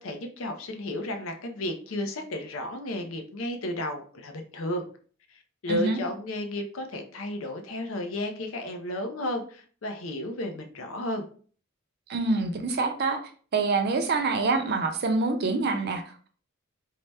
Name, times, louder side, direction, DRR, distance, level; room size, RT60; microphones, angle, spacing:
voice 1, 0.0-4.9 5.3-11.3, left 1 dB, 70° left, 5 dB, 0.5 m, -33 dB
voice 2, 5.7-6.0 12.1-13.2 13.5-16.3, right 3 dB, 50° right, 6 dB, 0.5 m, -26 dB
2.7 x 2.1 x 3.2 m, 0.43 s
head